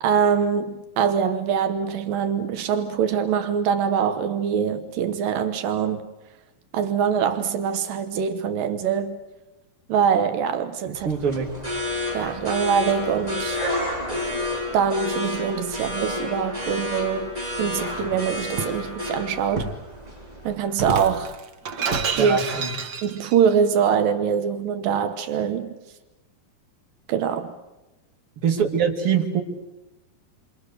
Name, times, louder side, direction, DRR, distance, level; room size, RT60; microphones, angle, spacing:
voice 1, 0.0-6.1 6.7-9.2 9.9-11.1 12.1-13.6 14.7-17.3 17.6-19.7 20.4-21.4 22.1-22.4 23.0-25.8 27.1-27.5, right 7 dB, 80° right, 2.8 m, -23 dB
voice 2, 10.8-11.5 22.2-22.7 28.4-29.4, right 7 dB, 40° right, 3.3 m, -23 dB
sound 1, 10.9-20.5, left 1 dB, 10° right, 4.1 m, -30 dB
Shatter, 18.0-18.8 19.6-19.9 20.7-23.4, right 5 dB, 60° right, 1.1 m, -29 dB
28.5 x 25.5 x 6.7 m
omnidirectional pair, 3.9 m